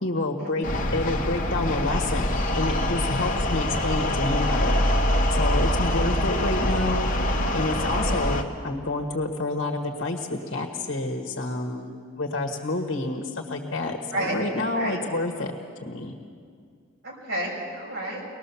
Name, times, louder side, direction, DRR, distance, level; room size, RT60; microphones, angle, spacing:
voice 1, 0.0-4.8 5.3-7.1 7.5-15.5 15.8-16.1, left 2 dB, 60° left, 2 dB, 1.6 m, -28 dB
sound 1, 0.6-8.4, left 1 dB, 40° left, 1.4 m, -24 dB
voice 2, 14.1-15.0 17.0-18.2, right 1 dB, 60° right, -3 dB, 6.9 m, -31 dB
24.5 x 19.5 x 7.1 m, 2.2 s
head